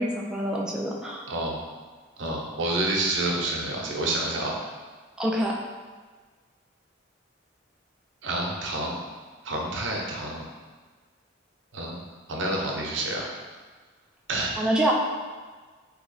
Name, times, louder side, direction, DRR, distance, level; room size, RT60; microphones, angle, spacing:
voice 1, 0.0-1.2 5.2-5.5 14.6-14.9, right 1 dB, 5° right, -2 dB, 0.3 m, -26 dB
voice 2, 1.3-1.6 2.2-4.5 8.2-8.9 9.4-10.5 11.7-12.0 12.3-13.3 14.3-14.6, right 2 dB, 70° right, -1 dB, 0.7 m, -28 dB
2.9 x 2.8 x 4.0 m, 1.4 s
head